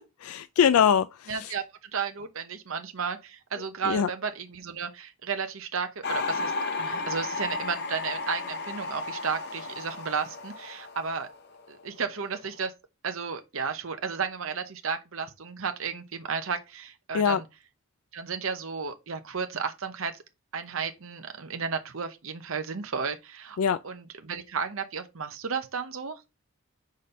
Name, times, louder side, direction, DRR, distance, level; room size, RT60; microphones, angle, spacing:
voice 1, 0.0-1.5 3.8-4.1 17.1-17.4 23.6-23.8, left 8 dB, 80° left, 0.4 m, -23 dB
voice 2, 1.3-6.5 6.8-11.3 11.7-12.7 13.0-17.4 18.1-20.2 20.5-23.6 23.8-26.2, right 5 dB, 65° right, 0.8 m, -33 dB
sound 1, 6.0-11.9 12.1-12.6, left 3 dB, 50° left, 0.8 m, -33 dB
5.2 x 4.3 x 5.3 m
head